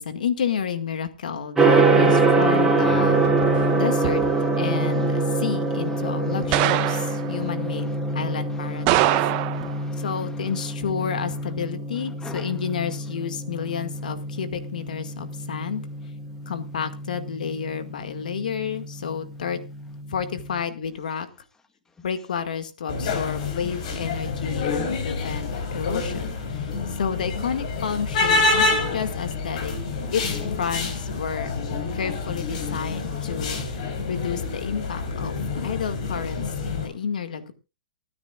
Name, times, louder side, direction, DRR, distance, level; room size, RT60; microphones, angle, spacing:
voice 1, 0.0-3.3 3.7-4.2 4.6-9.2 10.0-15.8 16.5-19.6 20.1-21.3 22.0-29.7 30.1-31.5 31.9-37.5, left 7 dB, 70° left, 9 dB, 2.0 m, -30 dB
Gong, 1.6-20.5, right 3 dB, 5° right, 3.6 m, -25 dB
voice 2, 2.8-3.7 6.3-6.4 7.1-7.4 8.0-8.1 9.1-10.0 10.4-10.5 12.2-12.5, left 4 dB, 10° left, 7 dB, 1.8 m, -40 dB
sound 1, 3.2-3.6 4.0-4.3 6.5-7.3 8.9-9.8, right 14 dB, 35° right, 1.3 m, -23 dB
sound 2, 22.9-36.9, left 3 dB, 50° left, 4.6 m, -27 dB
27.5 x 9.7 x 2.4 m, 0.29 s
hypercardioid pair, 135°, 5 cm